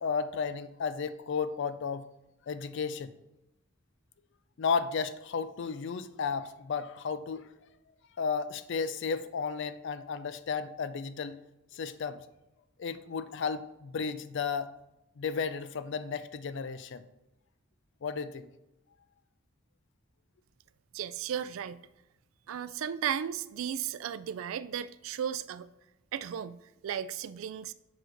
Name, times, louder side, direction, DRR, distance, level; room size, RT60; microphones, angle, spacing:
voice 1, 0.0-2.0 2.5-3.1 4.6-7.5 8.2-11.4 11.7-12.2 12.8-14.7 15.2-17.0 18.0-18.5, left 5 dB, 60° left, 13 dB, 0.4 m, -33 dB
voice 2, 20.9-21.8 22.5-25.7 26.1-27.7, right 9 dB, 75° right, 15 dB, 0.3 m, -35 dB
6.0 x 4.9 x 3.9 m, 0.92 s
head